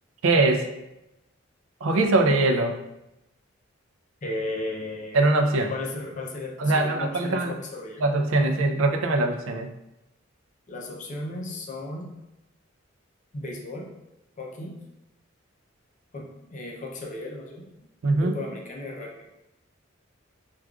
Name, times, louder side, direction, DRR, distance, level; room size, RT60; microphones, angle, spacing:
voice 1, 0.2-0.7 1.8-2.8 5.1-5.7 6.6-7.5 8.0-9.7 18.0-18.4, right 2 dB, 75° right, 4 dB, 0.4 m, -22 dB
voice 2, 4.2-5.2 5.7-8.0 10.7-12.1 13.3-13.9 14.4-14.8 16.1-17.7 18.2-19.1, left 2 dB, 40° left, -1 dB, 0.5 m, -35 dB
4.5 x 2.4 x 2.3 m, 0.91 s
head